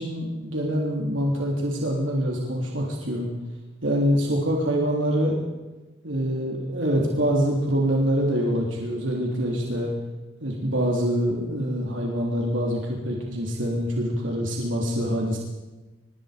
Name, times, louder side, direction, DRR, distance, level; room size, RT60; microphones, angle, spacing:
voice 1, 0.0-3.3 3.8-5.4 6.0-9.9 10.4-15.4, equal, 85° right, -1 dB, 3.6 m, -25 dB
24.5 x 22.0 x 5.3 m, 1.1 s
head